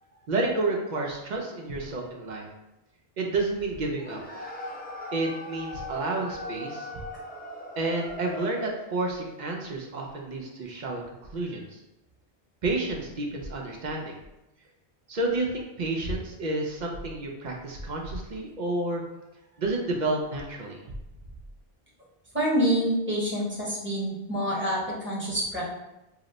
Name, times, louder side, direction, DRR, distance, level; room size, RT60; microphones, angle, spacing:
voice 1, 0.3-2.5 3.2-4.2 5.1-6.9 7.8-11.8 12.6-14.2 15.1-19.0 19.6-20.8, right 2 dB, 55° right, 0 dB, 0.5 m, -30 dB
sound 1, 4.0-8.8, left 1 dB, 15° left, 0.3 m, -39 dB
voice 2, 22.3-25.7, equal, 10° right, -7 dB, 0.9 m, -27 dB
2.8 x 2.0 x 3.8 m, 0.94 s
omnidirectional pair, 1.1 m